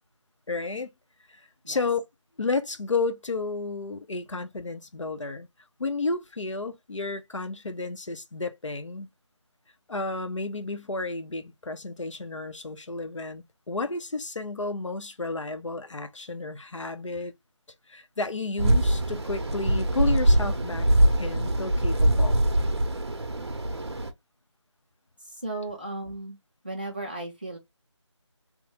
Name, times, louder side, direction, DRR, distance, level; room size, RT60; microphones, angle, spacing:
voice 1, 0.5-0.9 1.3-2.0 2.4-5.5 5.8-9.1 9.9-17.3 17.9-20.9 21.2-22.4, left 3 dB, 85° left, 0.7 m, -32 dB
sound 1, 18.6-24.1, right 1 dB, 60° right, 0.7 m, -23 dB
voice 2, 25.2-26.4 26.6-27.6, right 2 dB, 20° right, 0.6 m, -35 dB
3.0 x 2.2 x 3.5 m
figure-of-eight pair, 175°, 16 cm